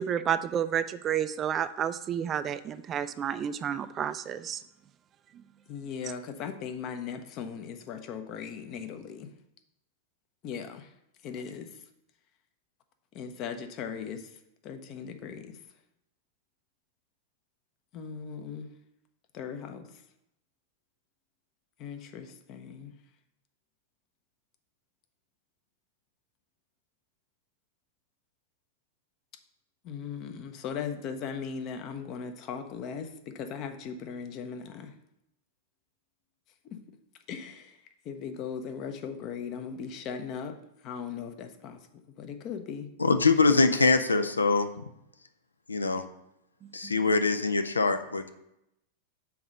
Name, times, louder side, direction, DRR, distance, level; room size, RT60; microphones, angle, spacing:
voice 1, 0.0-4.6 46.8-46.9, right 9 dB, 30° right, 13 dB, 0.3 m, -30 dB
voice 2, 5.7-9.3 10.4-10.8 11.2-11.7 13.1-14.2 14.6-15.5 17.9-18.7 19.3-19.9 21.8-22.9 29.8-33.1 33.3-34.9 37.3-37.7 38.1-40.5 40.8-41.8 42.2-42.9, left 6 dB, 40° left, 7 dB, 0.7 m, -38 dB
voice 3, 43.0-44.7 45.7-46.0 46.7-48.3, left 3 dB, 80° left, 9 dB, 0.4 m, -23 dB
5.9 x 4.2 x 6.2 m, 0.84 s
figure-of-eight pair, 95°, 0 cm